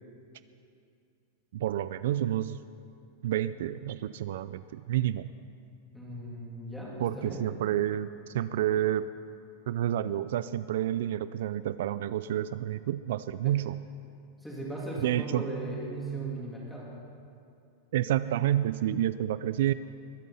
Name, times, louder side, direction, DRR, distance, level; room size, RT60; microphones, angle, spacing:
voice 1, 1.5-2.6 3.2-5.3 7.0-9.0 9.7-13.8 15.0-15.5 17.9-19.7, right 12 dB, 65° right, 14 dB, 0.3 m, -29 dB
voice 2, 5.9-7.6 13.4-13.5 14.4-16.9, right 2 dB, ahead, -5 dB, 2.7 m, -37 dB
21.5 x 9.3 x 5.6 m, 2.6 s
supercardioid pair, 175°, 0 cm